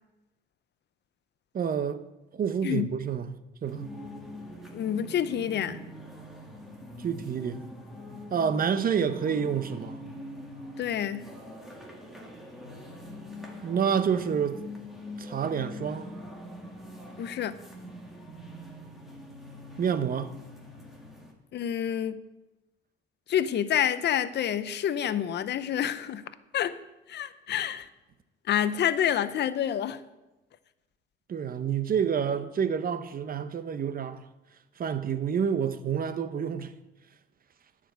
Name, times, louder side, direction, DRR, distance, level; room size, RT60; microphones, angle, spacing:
voice 1, 1.5-2.0 2.3-3.9 7.0-7.7 8.3-10.0 13.6-14.6 15.2-16.1 19.8-20.3 31.3-34.3 34.8-36.7, right 7 dB, 45° right, 0.8 m, -28 dB
sound 1, 3.6-21.3, left 1 dB, ahead, 2.2 m, -43 dB
voice 2, 4.7-5.8 10.8-11.2 17.2-17.5 21.5-22.2 23.3-26.2 26.5-26.7 27.1-27.9 28.5-30.0, left 10 dB, 60° left, 0.7 m, -28 dB
10.0 x 5.1 x 8.0 m
cardioid pair, 90°, 20 cm